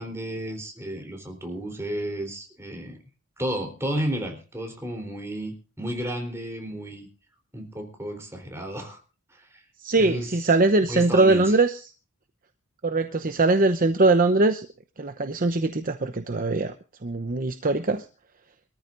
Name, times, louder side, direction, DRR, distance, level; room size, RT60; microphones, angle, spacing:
voice 1, 0.0-3.0 3.4-7.1 7.5-9.0 9.3-9.6 10.0-10.3 10.9-11.5, right 1 dB, 10° right, 3 dB, 3.8 m, -32 dB
voice 2, 9.8-11.9 12.8-14.7 15.0-16.7 17.0-18.1, right 2 dB, 40° right, 8 dB, 0.8 m, -21 dB
24.0 x 14.0 x 2.6 m, 0.34 s
head